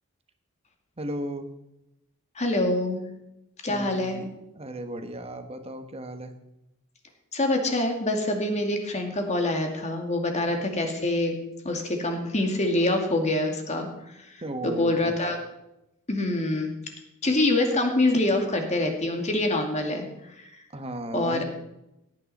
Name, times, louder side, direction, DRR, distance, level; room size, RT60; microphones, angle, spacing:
voice 1, 1.0-1.5 3.7-4.3 4.5-6.3 14.4-15.2 20.7-21.4, right 1 dB, 30° right, 7 dB, 1.3 m, -35 dB
voice 2, 2.4-3.1 3.6-4.2 7.3-13.9 14.2-15.4 16.1-16.7 17.2-20.1 20.4-20.5 21.1-21.4, left 2 dB, 35° left, 3 dB, 2.3 m, -25 dB
17.0 x 9.8 x 4.2 m, 0.87 s
head